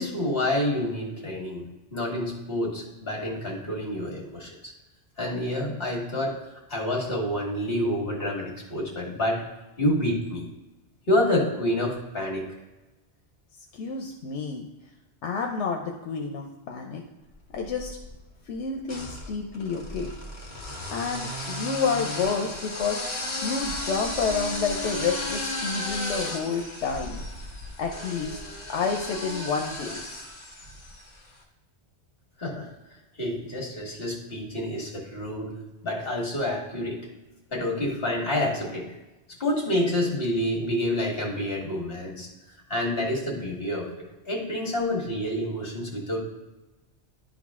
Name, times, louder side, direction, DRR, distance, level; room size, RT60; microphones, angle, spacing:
voice 1, 0.0-4.5 5.2-6.4 6.7-9.4 9.8-10.4 11.1-12.5 32.4-32.7 33.2-35.5 35.8-37.0 37.5-38.9 39.4-42.3 42.7-46.2, left 1 dB, 55° left, -1 dB, 1.9 m, -28 dB
voice 2, 13.7-14.7 15.2-17.0 17.5-18.0 18.5-20.1 20.9-23.0 23.4-27.2 27.8-28.4 28.7-30.3, left 5 dB, 85° left, 1 dB, 1.0 m, -29 dB
sound 1, 17.5-18.1 18.9-31.2, left 1 dB, 40° left, 1.4 m, -34 dB
11.0 x 3.9 x 3.6 m, 1.1 s
omnidirectional pair, 1.2 m